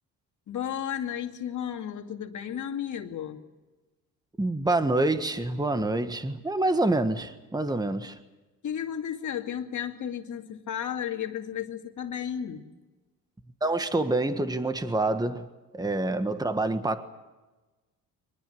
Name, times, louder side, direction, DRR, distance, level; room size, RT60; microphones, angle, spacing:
voice 1, 0.5-3.4 8.6-12.7, left 9 dB, 55° left, 2.4 m, -33 dB
voice 2, 4.4-8.2 13.6-15.5 15.7-17.0, right 2 dB, 10° right, 1.5 m, -27 dB
23.5 x 20.5 x 7.9 m
cardioid pair, 100°, 35 cm